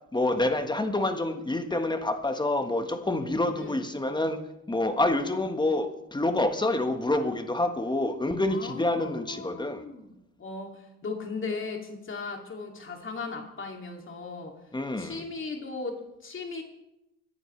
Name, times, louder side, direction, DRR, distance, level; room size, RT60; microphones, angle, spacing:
voice 1, 0.1-4.4 4.7-9.8 14.7-15.2, left 2 dB, 15° left, 7 dB, 1.4 m, -27 dB
voice 2, 8.5-10.1 10.4-14.5 15.0-16.6, left 4 dB, 40° left, 2 dB, 2.6 m, -37 dB
23.0 x 11.0 x 3.3 m, 0.86 s
cardioid pair, 90°, 30 cm